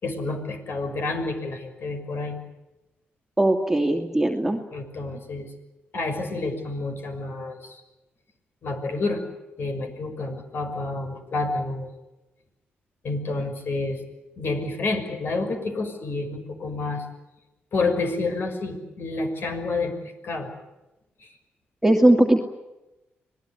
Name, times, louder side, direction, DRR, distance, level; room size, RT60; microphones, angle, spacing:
voice 1, 0.0-2.4 4.7-5.5 5.9-7.8 8.6-9.2 9.6-11.9 13.0-14.0 14.4-17.0 17.7-19.9 20.2-20.5 21.2-21.3, left 3 dB, 55° left, 6 dB, 6.0 m, -29 dB
voice 2, 3.4-4.6 21.8-22.4, right 1 dB, 5° right, 1 dB, 2.6 m, -19 dB
26.0 x 19.0 x 9.8 m, 0.99 s
cardioid pair, 75°, 4 cm